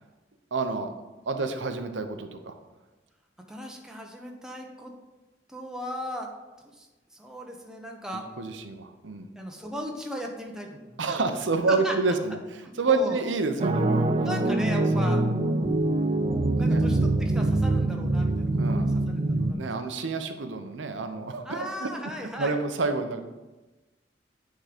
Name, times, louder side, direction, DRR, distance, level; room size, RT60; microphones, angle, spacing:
voice 1, 0.5-0.9 1.3-2.5 8.4-9.3 11.0-12.4 12.7-14.1 15.0-15.1 16.6-16.8 18.6-18.9 19.5-21.9 22.4-23.2, right 3 dB, 85° right, 7 dB, 0.7 m, -28 dB
voice 2, 3.5-4.9 5.5-6.3 6.8-6.9 7.1-8.3 9.4-10.9 11.7-11.9 12.6-13.2 14.2-15.2 16.6-19.6 21.4-22.6, equal, 5° right, 0 dB, 0.9 m, -37 dB
sound 1, 13.6-19.5, right 2 dB, 30° right, 0.4 m, -24 dB
8.9 x 3.8 x 5.0 m, 1.1 s
head